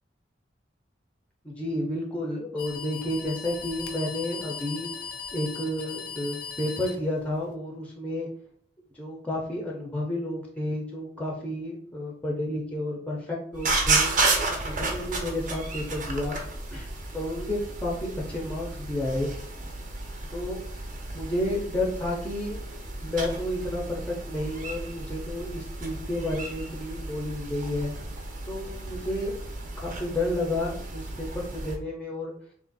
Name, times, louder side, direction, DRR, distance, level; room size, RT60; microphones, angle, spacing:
voice 1, 1.4-4.9 5.3-8.3 8.9-14.2 14.6-16.4 16.7-16.9 17.1-19.3 20.3-20.9 21.1-22.6 23.0-27.9 28.5-29.3 29.8-32.3, left 1 dB, 10° left, -2 dB, 0.5 m, -31 dB
sound 1, 2.6-7.5, left 6 dB, 65° left, 0.4 m, -39 dB
sound 2, 13.5-31.8, right 3 dB, 45° right, 0.6 m, -32 dB
2.8 x 2.4 x 3.9 m, 0.63 s
head